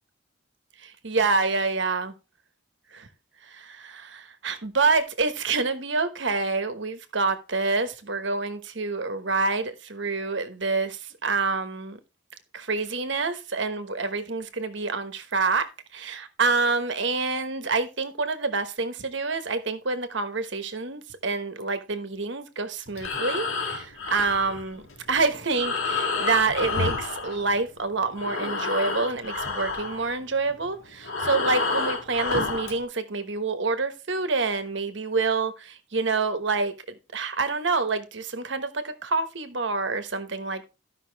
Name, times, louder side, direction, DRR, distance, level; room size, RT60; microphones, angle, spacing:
voice 1, 0.8-2.1 2.9-3.1 3.5-12.0 12.5-24.8 25.1-36.7 37.1-40.6, right 4 dB, 60° right, 1.2 m, -27 dB
Breathing, 22.9-27.9 28.1-32.8, left 3 dB, 80° left, 2.2 m, -30 dB
14.0 x 5.7 x 3.4 m
head